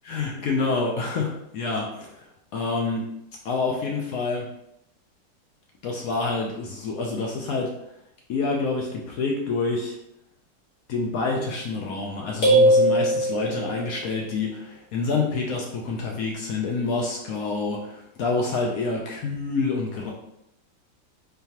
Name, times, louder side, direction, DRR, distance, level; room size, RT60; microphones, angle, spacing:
voice 1, 0.1-3.1 3.4-4.5 5.8-7.7 8.3-10.0 10.9-20.1, left 3 dB, 85° left, -1 dB, 0.7 m, -27 dB
sound 1, 12.4-13.9, right 1 dB, 45° left, 1.5 m, -19 dB
3.8 x 3.2 x 2.8 m, 0.81 s
omnidirectional pair, 2.1 m